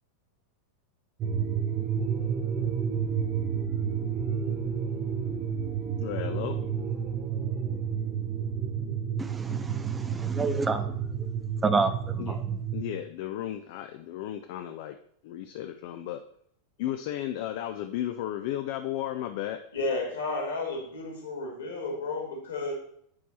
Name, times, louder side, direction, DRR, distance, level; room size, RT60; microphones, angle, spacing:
sound 1, 1.2-12.8, right 7 dB, 30° right, 0.9 m, -30 dB
voice 1, 6.0-6.6 12.2-12.4 12.7-15.0 15.2-16.2 16.8-19.6, left 12 dB, 50° left, 7 dB, 0.4 m, -34 dB
voice 2, 9.2-10.9 11.6-12.4, right 4 dB, 15° right, 10 dB, 0.4 m, -29 dB
voice 3, 19.7-22.7, left 3 dB, 65° left, 1 dB, 2.4 m, -32 dB
8.6 x 4.6 x 4.2 m, 0.67 s
figure-of-eight pair, 90°, 0 cm